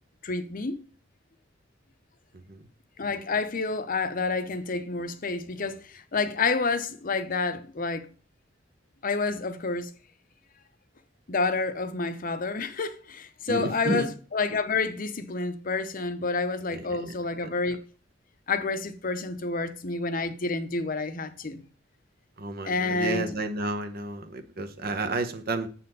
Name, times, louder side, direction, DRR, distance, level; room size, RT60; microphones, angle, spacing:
voice 1, 0.2-0.8 3.0-8.0 9.0-9.9 11.3-17.8 18.5-21.6 22.6-23.3, left 4 dB, 45° left, 0.7 m, -29 dB
voice 2, 2.3-2.7 13.5-14.1 16.7-17.1 22.4-25.7, right 2 dB, 50° right, 1.0 m, -31 dB
7.6 x 4.2 x 5.4 m
head